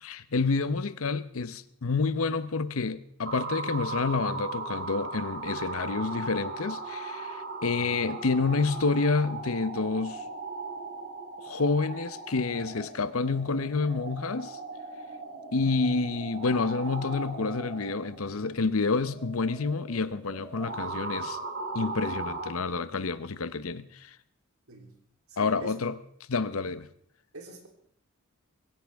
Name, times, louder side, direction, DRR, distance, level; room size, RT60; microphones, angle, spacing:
voice 1, 0.0-10.2 11.4-14.6 15.5-21.4 21.7-24.2 25.4-26.0 26.3-26.9, left 4 dB, 70° left, 0.8 m, -28 dB
sound 1, 3.2-22.5, right 3 dB, 55° right, 3.8 m, -38 dB
voice 2, 25.3-25.8 27.3-27.7, right 1 dB, 75° right, 3.3 m, -45 dB
22.0 x 16.5 x 3.5 m
head